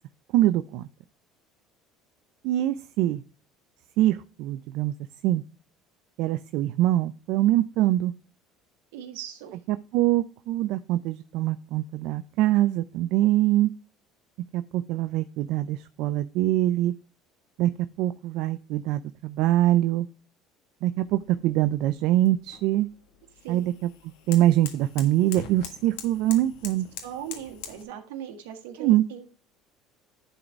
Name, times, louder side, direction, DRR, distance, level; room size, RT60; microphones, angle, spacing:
voice 1, 0.3-0.9 2.4-3.2 4.0-4.9 5.2-5.4 6.2-8.1 9.7-13.7 14.5-16.9 17.6-17.7 18.0-20.1 20.8-22.9 23.5-23.9 24.3-26.9 28.8-29.0, right 14 dB, 70° right, 12 dB, 0.5 m, -24 dB
voice 2, 8.9-9.6 23.4-23.6 27.0-29.2, right 10 dB, 90° right, 3 dB, 1.6 m, -39 dB
sound 1, 21.1-27.8, left 8 dB, 85° left, 1.7 m, -44 dB
11.0 x 4.1 x 4.6 m, 0.36 s
supercardioid pair, 105°, 0 cm